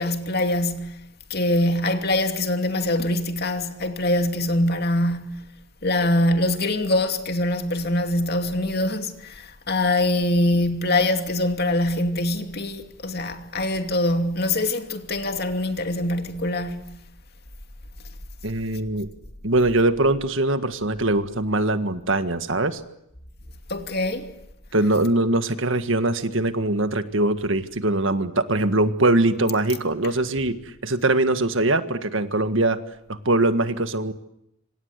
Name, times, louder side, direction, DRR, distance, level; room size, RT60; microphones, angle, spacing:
voice 1, 0.0-17.0 23.7-24.3, left 1 dB, 45° left, 2.7 m, -24 dB
voice 2, 18.4-19.1 19.4-22.8 24.7-30.6 30.8-32.8 33.1-34.1, right 2 dB, 60° right, 1.7 m, -22 dB
26.5 x 26.5 x 8.3 m
head